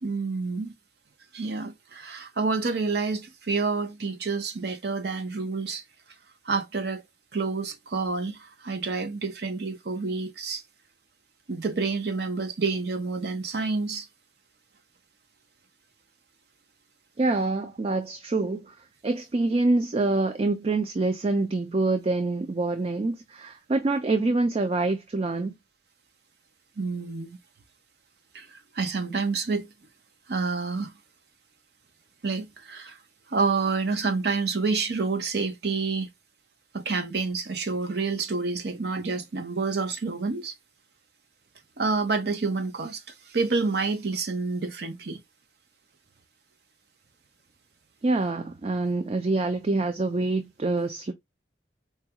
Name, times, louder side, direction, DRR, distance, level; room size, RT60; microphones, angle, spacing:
voice 1, 0.0-0.7 1.3-5.8 6.5-7.0 7.3-10.6 11.5-14.1 26.8-27.4 28.3-29.7 30.3-30.9 32.2-33.0 33.3-36.1 36.7-40.5 41.8-43.0 43.3-45.2, right 4 dB, 65° right, 0.8 m, -28 dB
voice 2, 17.2-18.8 19.0-25.5 48.0-51.1, right 2 dB, 35° right, 0.4 m, -26 dB
4.7 x 2.3 x 2.8 m
head